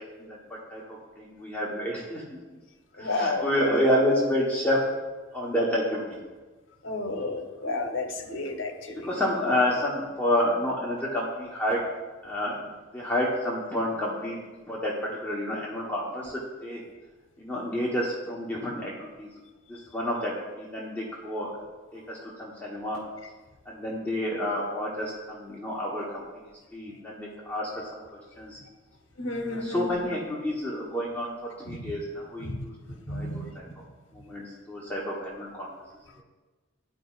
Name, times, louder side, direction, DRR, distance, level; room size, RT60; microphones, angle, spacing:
voice 1, 0.7-2.4 3.0-4.9 5.3-6.2 9.0-11.8 12.2-14.4 14.7-16.8 17.4-19.3 19.7-21.5 21.9-23.0 23.6-26.2 26.7-28.6 29.5-32.7 33.1-33.7 34.1-35.7, left 1 dB, 10° left, -5 dB, 1.0 m, -29 dB
voice 2, 3.0-3.7 6.8-9.1 29.2-30.1 31.7-31.8 32.5-32.6 33.1-33.5, left 2 dB, 75° left, 5 dB, 0.9 m, -31 dB
12.0 x 4.9 x 2.4 m, 1.2 s
head